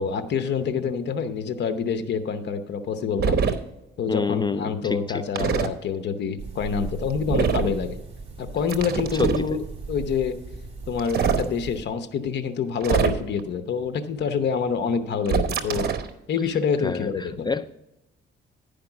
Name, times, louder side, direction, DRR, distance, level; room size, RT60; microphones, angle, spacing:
voice 1, 0.0-3.4 4.0-8.0 8.4-10.3 10.9-15.9 16.3-17.5, left 6 dB, 60° left, 10 dB, 0.8 m, -27 dB
sound 1, 3.2-3.5 5.3-5.7 7.3-7.7 8.7-9.5 11.0-11.4 12.8-13.4 15.2-16.1, right 6 dB, 55° right, 0.9 m, -23 dB
voice 2, 4.1-5.2 16.8-17.7, left 5 dB, 20° left, 14 dB, 0.3 m, -28 dB
sound 2, 6.4-11.8, right 4 dB, 30° right, 2.3 m, -37 dB
10.5 x 5.2 x 5.9 m, 0.89 s
cardioid pair, 90°, 20 cm